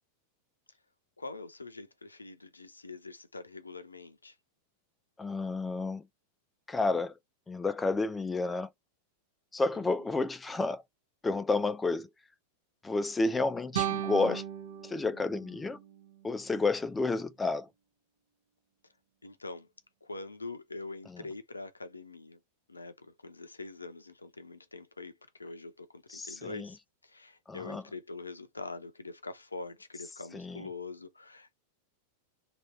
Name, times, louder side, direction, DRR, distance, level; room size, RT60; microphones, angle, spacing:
voice 1, 1.2-4.4 19.2-19.7 20.0-22.4 22.7-31.6, left 3 dB, 80° left, 0.7 m, -44 dB
voice 2, 5.2-6.0 6.7-7.1 7.5-8.7 9.5-10.8 11.2-12.1 12.8-14.4 14.8-15.8 16.2-17.7 21.1-21.2 26.1-26.7 27.5-27.8 30.3-30.6, left 3 dB, 10° left, 0.4 m, -30 dB
sound 1, 13.7-16.7, right 10 dB, 60° right, 1.0 m, -37 dB
3.1 x 2.9 x 4.2 m
figure-of-eight pair, 90°, 0 cm